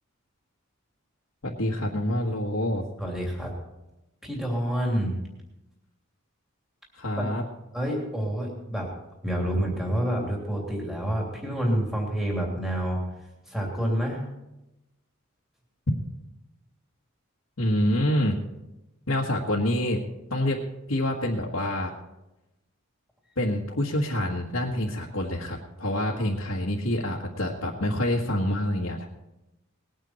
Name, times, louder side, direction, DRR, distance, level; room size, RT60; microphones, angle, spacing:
voice 1, 1.4-2.8 6.9-7.4 17.6-18.4 19.1-20.0 20.3-20.6 20.9-21.9 23.4-29.1, left 1 dB, 80° left, -5 dB, 1.6 m, -27 dB
voice 2, 3.0-3.5 4.2-5.2 7.2-7.3 7.7-8.9 9.2-13.0 13.5-14.2, equal, ahead, -2 dB, 3.0 m, -28 dB
20.0 x 9.2 x 4.4 m, 0.95 s
head